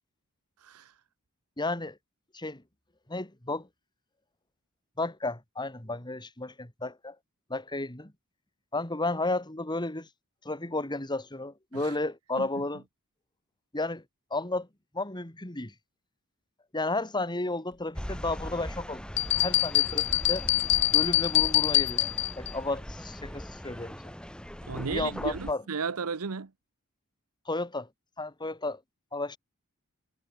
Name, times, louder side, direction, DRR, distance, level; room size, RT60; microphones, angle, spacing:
voice 1, 0.6-1.0 11.7-12.0 12.4-12.5 24.7-26.5, right 5 dB, 85° right, 0.9 m, -34 dB
voice 2, 1.6-2.0 2.3-2.6 3.1-3.7 5.0-7.2 7.5-8.1 8.7-10.1 10.4-12.8 13.7-14.0 14.3-14.7 14.9-15.7 16.7-19.0 19.4-20.5 20.9-22.0 22.4-24.0 24.9-25.6 27.5-27.9 28.2-28.8 29.1-29.4, left 2 dB, 20° left, 2.6 m, -32 dB
sound 1, 17.9-25.5, equal, 5° left, 1.4 m, -40 dB
sound 2, 19.2-22.5, left 17 dB, 55° left, 0.4 m, -25 dB
head